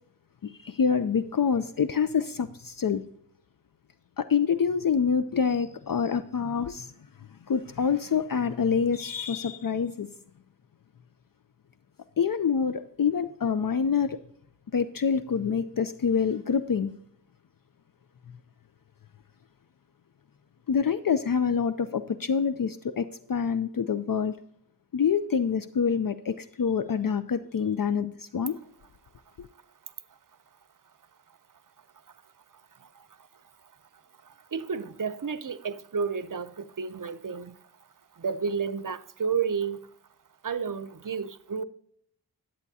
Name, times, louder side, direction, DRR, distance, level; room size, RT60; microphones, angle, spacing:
voice 1, 0.4-3.0 4.2-6.9 7.5-10.1 12.2-14.2 14.7-16.9 20.7-24.4 24.9-28.6 29.4-29.5, left 6 dB, 55° left, 0.5 m, -26 dB
voice 2, 32.8-33.3 34.2-37.6 38.1-39.9 40.4-41.6, right 6 dB, 50° right, 0.6 m, -32 dB
10.5 x 8.5 x 2.7 m
wide cardioid pair, 50°, 41 cm